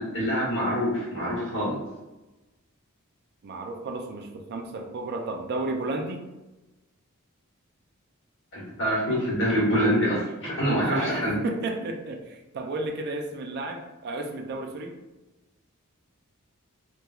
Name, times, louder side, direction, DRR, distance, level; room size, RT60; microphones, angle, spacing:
voice 1, 0.0-1.8 8.5-11.4, equal, 60° left, -6 dB, 1.1 m, -25 dB
voice 2, 3.4-6.2 10.6-15.0, right 2 dB, 50° right, 4 dB, 0.4 m, -33 dB
2.9 x 2.2 x 2.3 m, 1.1 s
head